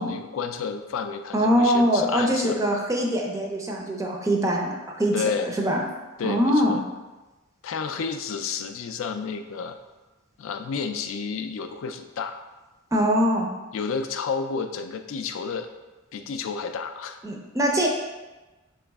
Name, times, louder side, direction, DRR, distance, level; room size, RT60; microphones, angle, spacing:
voice 1, 0.0-2.6 5.1-5.5 6.2-6.8 7.6-9.8 10.4-12.4 13.7-15.7 16.1-17.2, left 5 dB, 65° left, 8 dB, 0.4 m, -31 dB
voice 2, 1.3-5.8 6.2-6.8 12.9-13.5 17.2-17.9, equal, 15° right, 0 dB, 0.4 m, -23 dB
4.8 x 3.0 x 3.4 m, 1.1 s
head